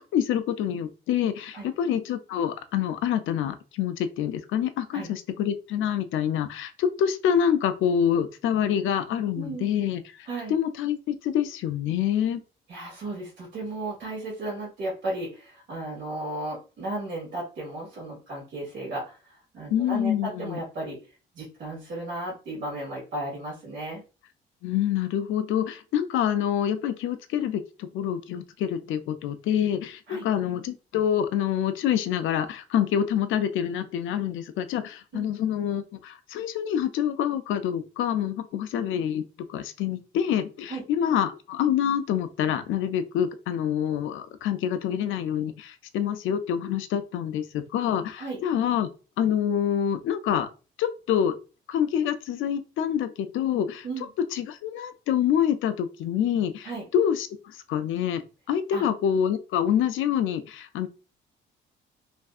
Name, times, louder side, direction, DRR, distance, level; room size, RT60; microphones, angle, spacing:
voice 1, 0.1-12.4 19.7-20.6 24.6-39.2 39.5-48.9 49.2-50.5 50.8-51.4 51.7-53.9 54.3-58.2 58.5-60.9, left 9 dB, 80° left, 0.4 m, -26 dB
voice 2, 9.3-9.6 10.2-10.5 12.7-24.0 30.1-30.3 35.1-35.3 40.7-40.8 48.2-48.4 53.8-54.1 56.6-56.9 58.7-58.9, right 2 dB, 70° right, 1.6 m, -35 dB
3.3 x 2.6 x 2.4 m
cardioid pair, 90°, 20 cm